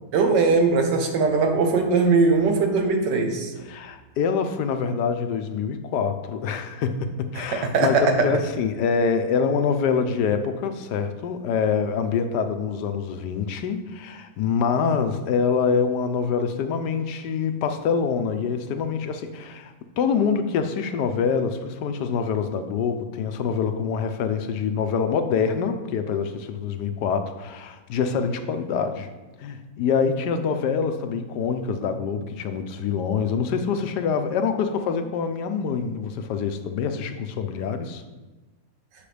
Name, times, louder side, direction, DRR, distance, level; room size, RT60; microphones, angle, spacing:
voice 1, 0.1-3.5 7.5-8.3, right 4 dB, 80° right, 5 dB, 1.5 m, -20 dB
voice 2, 3.6-8.0 8.2-29.1 29.4-38.0, left 6 dB, 75° left, 8 dB, 1.2 m, -25 dB
8.5 x 5.9 x 3.3 m, 1.2 s
omnidirectional pair, 1.8 m